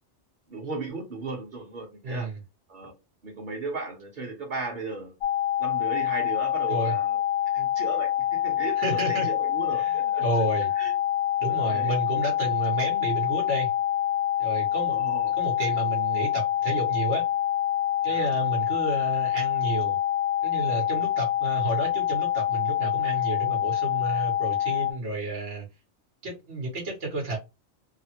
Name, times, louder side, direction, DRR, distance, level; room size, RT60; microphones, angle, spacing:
voice 1, 0.5-2.3 2.7-2.9 3.2-5.1 5.6-7.2 7.5-10.2 10.8-10.9 11.5-11.9 14.9-15.3 18.1-18.3 20.9-21.1, right 3 dB, 45° right, 1.1 m, -36 dB
voice 2, 2.0-2.4 6.7-6.9 8.8-9.3 9.8-9.9 10.2-10.7 11.4-13.7 14.4-15.0 15.4-17.2 18.0-20.0 20.4-25.6 26.2-27.4, right 2 dB, 85° right, 1.4 m, -31 dB
sound 1, 5.2-24.9, left 11 dB, 65° left, 0.7 m, -26 dB
3.3 x 2.0 x 2.8 m
omnidirectional pair, 1.2 m